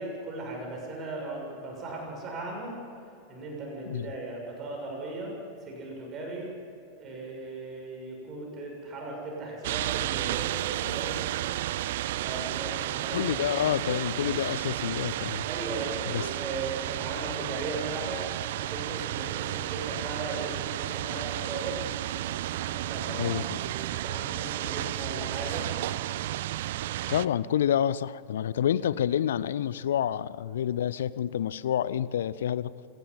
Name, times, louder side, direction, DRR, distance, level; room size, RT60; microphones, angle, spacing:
voice 1, 0.0-2.8 3.3-5.4 5.7-6.5 7.0-11.2 12.2-14.0 15.5-21.8 22.6-25.7, right 2 dB, 30° right, 0 dB, 6.8 m, -37 dB
sound 1, 9.6-27.3, right 14 dB, 55° right, 0.5 m, -32 dB
voice 2, 13.1-15.5 16.1-16.3 23.2-23.6 27.1-32.7, left 10 dB, 60° left, 18 dB, 0.6 m, -28 dB
25.5 x 18.5 x 5.6 m, 2.7 s
figure-of-eight pair, 90°, 0 cm